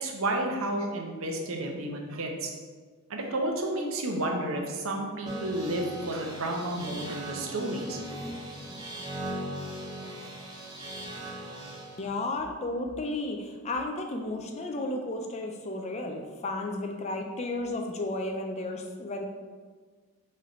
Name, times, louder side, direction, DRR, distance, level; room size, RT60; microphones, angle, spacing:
voice 1, 0.0-2.5 3.1-8.0 8.7-8.8, right 1 dB, 70° right, 1 dB, 0.7 m, -31 dB
sound 1, 5.3-12.1, right 1 dB, 20° right, 0.7 m, -39 dB
voice 2, 12.0-19.2, left 2 dB, 30° left, 3 dB, 0.4 m, -33 dB
4.3 x 3.2 x 3.9 m, 1.5 s
head